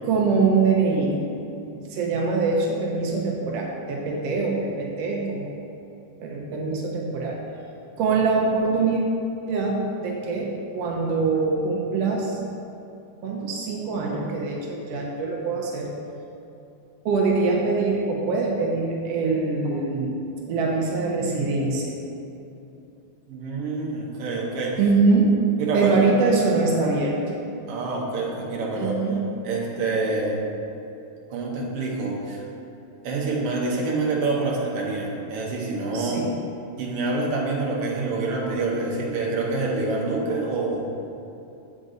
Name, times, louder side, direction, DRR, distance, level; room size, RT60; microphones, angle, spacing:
voice 1, 0.0-1.2 1.7-5.5 6.2-7.4 8.0-9.0 9.5-12.4 13.2-15.9 17.0-20.2 20.5-22.0 24.8-25.4 25.7-27.2 28.8-29.2 35.9-36.3, right 4 dB, 90° right, -1 dB, 1.4 m, -23 dB
voice 2, 23.3-24.8 25.6-26.0 27.7-28.9 29.4-30.4 31.3-32.4 33.0-36.3 36.8-40.9, right 3 dB, 65° right, -2 dB, 1.5 m, -27 dB
7.8 x 5.1 x 3.9 m, 2.8 s
omnidirectional pair, 3.7 m